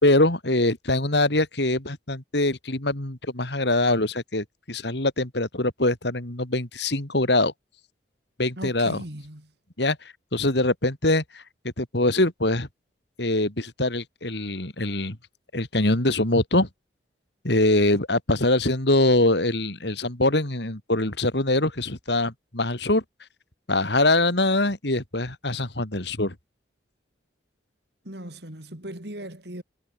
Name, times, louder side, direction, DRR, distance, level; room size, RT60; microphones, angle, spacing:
voice 1, 0.0-7.5 8.4-9.0 9.8-10.0 10.3-11.4 11.8-12.7 13.2-15.2 15.5-16.7 17.4-23.0 23.7-26.3, left 2 dB, 65° left, 3.1 m, -23 dB
voice 2, 8.6-9.5 28.0-29.6, right 1 dB, 60° right, 4.5 m, -38 dB
head